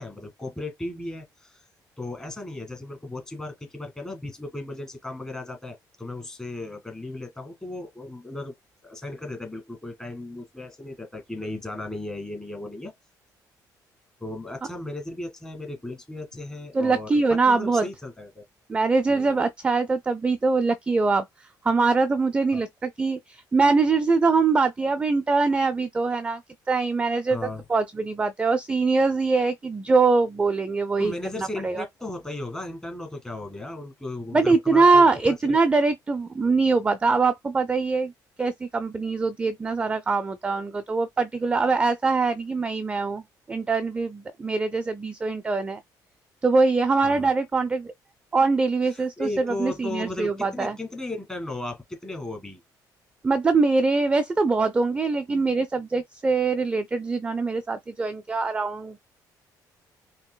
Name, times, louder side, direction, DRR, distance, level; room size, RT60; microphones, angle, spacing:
voice 1, 0.0-1.6 2.0-8.5 8.8-12.9 14.2-18.4 19.1-19.4 22.5-22.7 27.3-27.6 31.0-35.6 47.0-47.3 48.9-52.6, left 2 dB, 10° left, 1.7 m, -36 dB
voice 2, 16.7-17.9 18.7-26.4 26.7-27.4 27.7-31.8 34.3-38.1 38.4-43.2 43.5-45.8 46.4-47.9 48.3-50.8 53.2-59.0, right 4 dB, 15° right, 0.4 m, -23 dB
5.3 x 2.8 x 2.2 m
cardioid pair, 140°, 7 cm